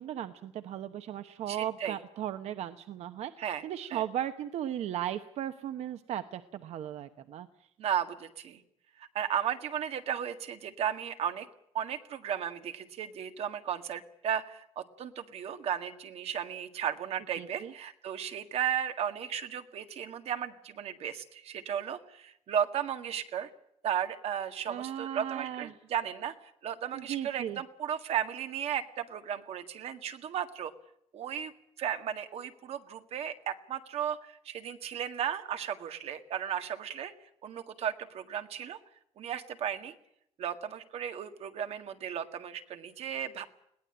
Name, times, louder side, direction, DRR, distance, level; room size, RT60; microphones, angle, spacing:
voice 1, 0.0-3.3 3.6-7.5 17.4-17.7 24.7-25.7 26.9-27.6, right 11 dB, 90° right, 9 dB, 1.0 m, -36 dB
voice 2, 1.5-2.0 3.4-3.6 3.9-4.0 7.8-8.6 9.0-11.5 11.7-23.5 23.8-26.3 26.6-30.7 31.1-31.5 31.8-37.1 37.4-38.8 39.2-39.9 40.4-43.5, right 9 dB, 70° right, 7 dB, 1.9 m, -35 dB
21.5 x 17.5 x 8.9 m, 0.78 s
cardioid pair, 170°, 11 cm